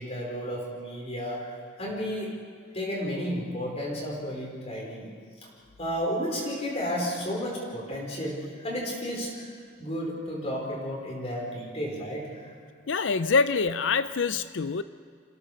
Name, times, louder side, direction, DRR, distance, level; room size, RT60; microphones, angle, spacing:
voice 1, 0.0-2.3 2.7-5.1 5.8-9.5 9.8-12.5, equal, 30° left, -3 dB, 4.5 m, -32 dB
voice 2, 12.9-14.8, left 4 dB, 70° left, 13 dB, 0.6 m, -25 dB
27.0 x 16.5 x 6.8 m, 2.1 s
head